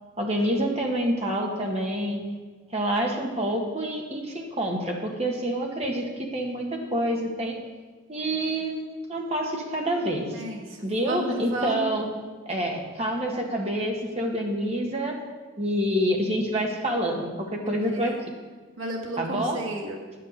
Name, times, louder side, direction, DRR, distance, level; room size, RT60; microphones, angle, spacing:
voice 1, 0.2-2.2 2.7-6.0 6.3-6.6 6.9-7.6 8.1-8.8 9.1-10.4 10.8-12.1 12.5-15.2 15.6-18.1 19.2-19.6, equal, 30° right, 0 dB, 1.6 m, -27 dB
voice 2, 10.3-12.0 17.6-18.2 18.8-20.0, right 1 dB, 80° right, -1 dB, 1.7 m, -33 dB
9.9 x 6.0 x 8.3 m, 1.4 s
head